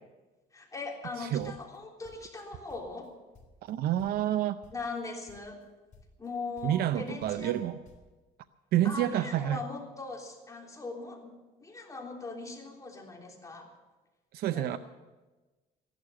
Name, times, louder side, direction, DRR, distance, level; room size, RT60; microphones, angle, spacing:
voice 1, 0.5-3.1 4.7-5.6 6.2-7.6 8.8-11.3 11.6-13.7 14.5-14.8, left 3 dB, 20° left, 0 dB, 3.4 m, -40 dB
sound 1, 1.1-2.4 2.7-3.7 4.0-4.4 4.6-5.0 5.3-5.7 5.9-6.3 6.6-8.1, left 3 dB, 50° left, 3.5 m, -57 dB
voice 2, 1.2-1.5 3.6-4.6 6.6-7.8 8.7-9.6 14.3-14.8, right 12 dB, 65° right, 12 dB, 0.6 m, -28 dB
15.0 x 12.0 x 7.3 m, 1.2 s
cardioid pair, 110°, 17 cm